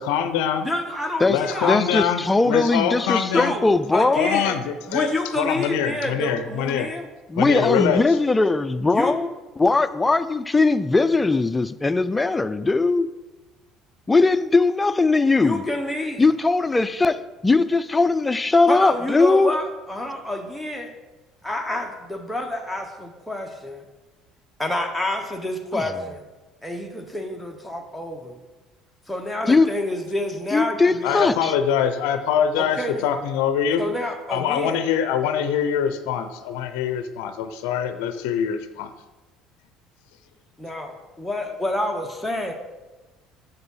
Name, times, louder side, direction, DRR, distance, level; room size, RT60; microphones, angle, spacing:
voice 1, 0.0-0.7 1.3-3.5 4.2-6.9 7.4-8.2 31.0-33.8 34.3-38.9, left 8 dB, 80° left, 9 dB, 0.4 m, -24 dB
voice 2, 0.6-1.7 3.3-3.6 3.9-4.6 4.9-7.1 8.9-9.1 15.4-16.2 18.7-20.9 21.4-23.8 24.6-26.2 26.6-28.4 29.1-31.2 32.6-33.1 33.8-34.8 40.6-42.5, left 1 dB, ahead, 1 dB, 0.9 m, -28 dB
voice 3, 1.6-4.4 7.3-9.3 9.6-13.1 14.1-15.6 16.2-19.5 25.7-25.8 29.5-29.7 30.5-31.5, left 3 dB, 20° left, 13 dB, 0.4 m, -19 dB
6.7 x 4.0 x 5.5 m, 1.1 s
supercardioid pair, 85°, 0 cm